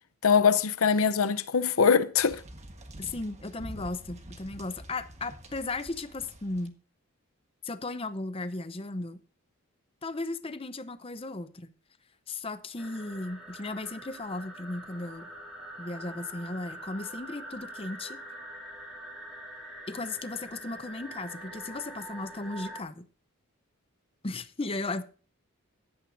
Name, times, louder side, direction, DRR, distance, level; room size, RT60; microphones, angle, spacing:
voice 1, 0.2-2.4, left 6 dB, 75° left, 0.7 m, -23 dB
sound 1, 2.2-6.7, right 1 dB, 30° right, 1.3 m, -47 dB
voice 2, 3.0-6.8 7.6-9.2 10.0-11.7 12.3-15.3 15.8-18.2 19.9-23.1 24.2-25.0, left 2 dB, 25° left, 0.6 m, -36 dB
sound 2, 12.8-22.8, right 1 dB, 5° right, 2.9 m, -44 dB
15.5 x 11.5 x 2.6 m
head